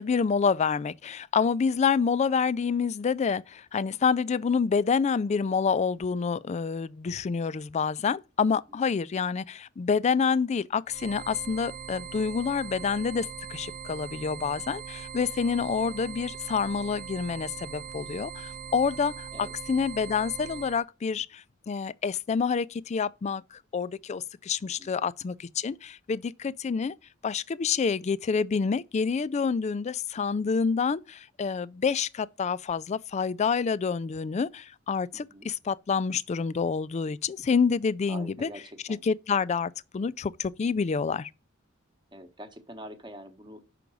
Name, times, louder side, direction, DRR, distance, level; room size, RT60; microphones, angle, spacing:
voice 1, 0.0-27.0 27.2-38.5 39.0-41.3, left 5 dB, 35° left, 0.3 m, -28 dB
sound 1, 10.9-20.8, right 7 dB, 40° right, 0.5 m, -41 dB
voice 2, 35.1-35.5 38.1-39.0 42.1-43.6, right 1 dB, 25° right, 1.0 m, -45 dB
5.8 x 5.3 x 6.1 m
head